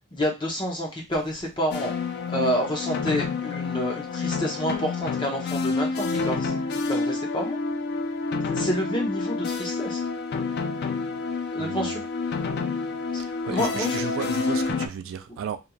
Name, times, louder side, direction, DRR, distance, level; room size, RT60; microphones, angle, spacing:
voice 1, 0.1-1.9 2.3-6.5 6.9-7.6 8.5-10.0 11.5-12.0 13.4-14.0, equal, 20° left, 0.7 m, -28 dB
sound 1, 1.7-14.9, left 4 dB, 50° left, 0.3 m, -28 dB
voice 2, 11.6-12.0 13.2-15.6, right 8 dB, 65° right, 0.3 m, -34 dB
3.0 x 2.5 x 2.3 m
head